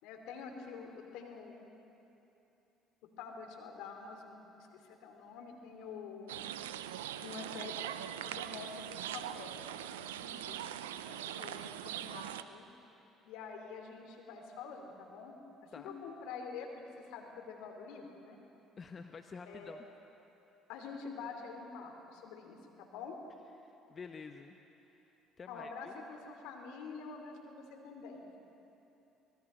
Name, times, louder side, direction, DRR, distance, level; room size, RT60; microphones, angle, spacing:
voice 1, 0.0-1.7 3.0-6.5 7.2-12.7 13.2-15.4 15.6-16.8 17.1-18.4 19.5-19.8 20.7-23.2 25.5-28.4, left 5 dB, 75° left, 3 dB, 2.8 m, -47 dB
sound 1, 6.3-12.4, right 11 dB, 90° right, 0.5 m, -42 dB
voice 2, 18.8-19.8 23.6-24.6 24.8-25.9, left 5 dB, 40° left, 6 dB, 1.0 m, -49 dB
25.0 x 20.0 x 5.6 m, 3.0 s
hypercardioid pair, 60°, 0 cm